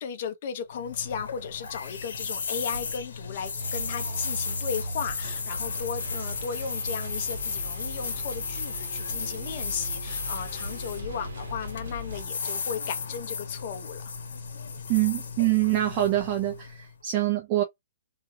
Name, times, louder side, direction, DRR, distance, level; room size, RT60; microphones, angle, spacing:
voice 1, 0.0-14.0, left 7 dB, 40° left, 0.6 m, -35 dB
sound 1, 0.7-16.9, left 5 dB, 90° left, 0.9 m, -35 dB
sound 2, 3.6-12.2, right 2 dB, 75° right, 0.8 m, -39 dB
voice 2, 14.9-17.6, right 15 dB, 25° right, 0.4 m, -25 dB
2.4 x 2.2 x 3.1 m
hypercardioid pair, 170°, 0 cm